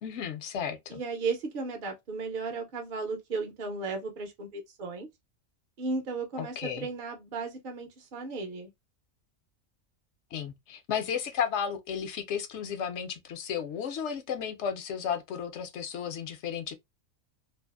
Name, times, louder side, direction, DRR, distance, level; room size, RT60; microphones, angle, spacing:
voice 1, 0.0-1.0 6.4-6.9 10.3-16.7, left 7 dB, 65° left, 0.8 m, -33 dB
voice 2, 0.9-5.1 5.8-8.7, right 4 dB, 50° right, 0.7 m, -35 dB
2.6 x 2.4 x 2.3 m
omnidirectional pair, 1.4 m